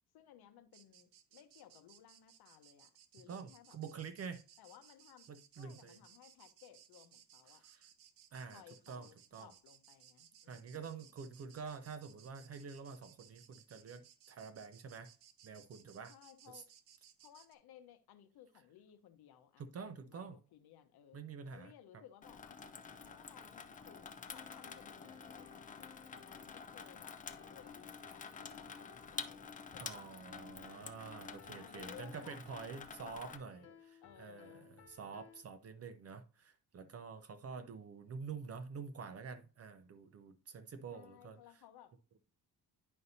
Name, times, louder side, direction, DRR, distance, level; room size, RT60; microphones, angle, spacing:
voice 1, 0.1-3.8 4.6-5.3 5.6-7.6 8.5-11.0 16.1-16.7 17.2-21.2 21.5-22.6 23.0-28.3 28.5-30.3 31.5-32.4 33.0-34.7 40.9-41.9, left 10 dB, 70° left, 1.0 m, -60 dB
sound 1, 0.7-17.5, right 10 dB, 70° right, 0.9 m, -63 dB
voice 2, 3.3-4.4 5.3-6.0 7.6-7.9 8.3-8.6 8.9-9.5 10.5-15.1 15.4-16.1 16.5-16.6 19.6-20.4 21.1-21.7 29.8-41.4, right 5 dB, 35° right, 0.6 m, -48 dB
Water tap faucet / Sink (filling or washing), 22.2-33.4, left 5 dB, 20° left, 0.4 m, -49 dB
sound 2, 24.3-35.4, left 6 dB, 35° left, 1.0 m, -59 dB
9.6 x 5.4 x 2.7 m
cardioid pair, 135°, 40 cm